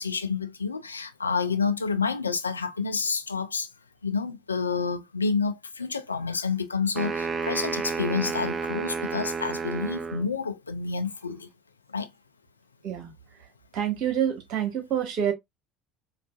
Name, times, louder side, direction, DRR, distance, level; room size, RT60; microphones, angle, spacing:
voice 1, 0.0-3.7 4.0-11.5 11.9-12.1, left 5 dB, 90° left, 0.3 m, -29 dB
sound 1, 7.0-10.3, right 5 dB, 30° right, 0.6 m, -31 dB
voice 2, 13.7-15.3, right 9 dB, 55° right, 1.2 m, -27 dB
4.6 x 2.4 x 2.2 m
figure-of-eight pair, 65°, 0 cm